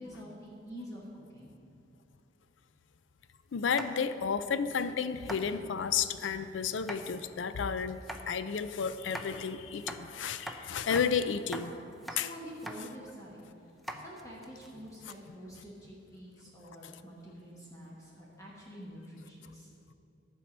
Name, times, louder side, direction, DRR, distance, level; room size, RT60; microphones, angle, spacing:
voice 1, 0.0-1.5 12.1-13.5 14.0-19.7, equal, 20° left, -5 dB, 1.3 m, -47 dB
voice 2, 3.5-8.0 8.3-11.7 12.2-12.3 13.9-14.0 15.5-15.6 16.8-16.9, left 6 dB, 85° left, 12 dB, 0.5 m, -32 dB
sound 1, 3.7-4.2 4.7-4.8 5.2-5.4 6.7-7.0 7.9-8.2 9.0-9.3 9.8-10.6 10.9-11.1 11.3-11.7 11.9-12.2 12.5-12.8 13.2-13.3 13.8-15.1, right 1 dB, ahead, 0.6 m, -43 dB
11.5 x 4.6 x 7.3 m, 2.6 s
head